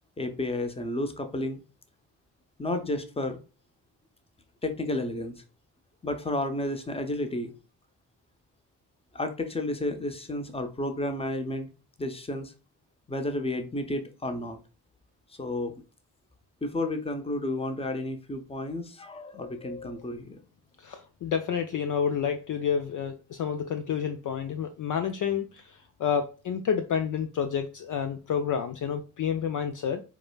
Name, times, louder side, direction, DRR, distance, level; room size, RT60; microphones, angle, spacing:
voice 1, 0.2-1.6 2.6-3.4 4.6-5.4 6.0-7.5 9.1-11.7 12.0-12.5 13.1-14.6 15.4-15.7 16.6-20.4, left 1 dB, 15° left, 0.7 m, -31 dB
voice 2, 20.8-30.0, left 7 dB, 45° left, 0.4 m, -29 dB
4.8 x 2.2 x 2.3 m
supercardioid pair, 45°, 43 cm